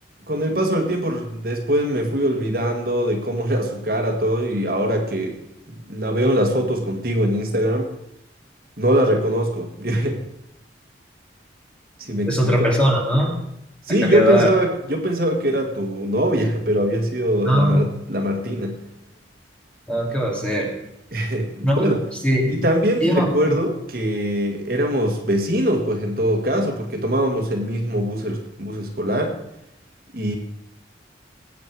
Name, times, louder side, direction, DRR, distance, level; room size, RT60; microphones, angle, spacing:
voice 1, 0.3-5.4 5.9-7.9 8.8-10.2 12.0-12.7 13.9-18.8 21.1-22.0 22.5-29.4 30.1-30.4, equal, 50° right, 3 dB, 1.8 m, -22 dB
voice 2, 12.3-13.3 14.0-14.5 17.5-17.8 19.9-20.7 21.6-21.9 22.2-22.5 23.0-23.3, equal, 5° left, -1 dB, 2.2 m, -19 dB
19.0 x 8.5 x 4.7 m, 0.81 s
head